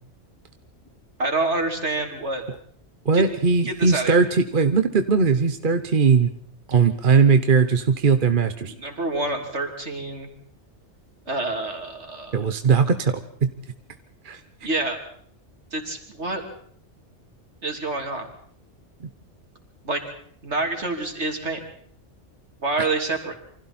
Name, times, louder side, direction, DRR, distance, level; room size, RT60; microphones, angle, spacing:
voice 1, 1.2-2.4 3.1-3.2 3.7-4.2 8.7-10.3 11.3-12.4 14.6-15.0 15.7-16.5 17.6-18.3 19.8-20.0 20.4-21.6 22.6-23.3, right 2 dB, 70° right, 3 dB, 3.5 m, -27 dB
voice 2, 3.0-6.3 6.7-8.7 12.3-13.5 14.2-14.4, right 5 dB, 45° right, 9 dB, 1.1 m, -19 dB
28.0 x 25.0 x 4.3 m, 0.62 s
omnidirectional pair, 1.2 m